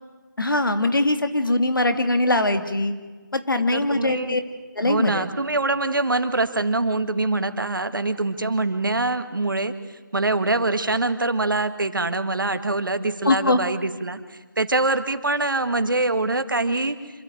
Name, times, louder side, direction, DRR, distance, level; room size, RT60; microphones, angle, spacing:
voice 1, 0.4-2.9 3.3-4.4 4.7-5.3 13.2-13.6, left 2 dB, 90° left, 8 dB, 2.5 m, -21 dB
voice 2, 3.7-4.4 4.8-17.0, right 2 dB, 80° right, 10 dB, 1.8 m, -24 dB
26.5 x 13.5 x 9.3 m, 1.4 s
figure-of-eight pair, 165°, 11 cm